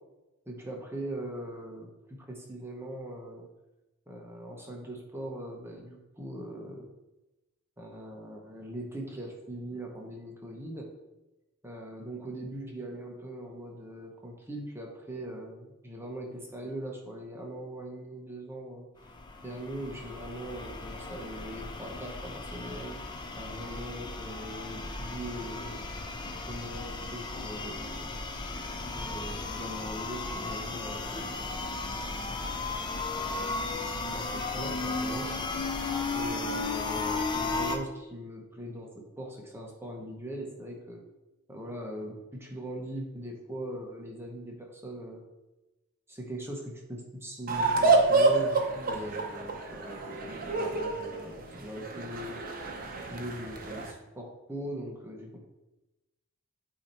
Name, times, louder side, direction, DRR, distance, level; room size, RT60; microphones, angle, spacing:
voice 1, 0.5-3.5 4.1-6.9 7.8-10.9 11.6-18.9 19.4-22.9 23.4-25.7 26.5-28.2 28.9-31.5 33.1-33.5 34.1-35.3 36.1-41.0 41.5-45.2 46.1-52.4 53.1-55.4, right 1 dB, 10° right, 0 dB, 0.9 m, -41 dB
sound 1, 19.0-37.8, left 3 dB, 20° left, 0.5 m, -35 dB
sound 2, 47.5-53.9, right 3 dB, 40° right, 0.7 m, -28 dB
8.4 x 2.8 x 4.3 m, 1.0 s
head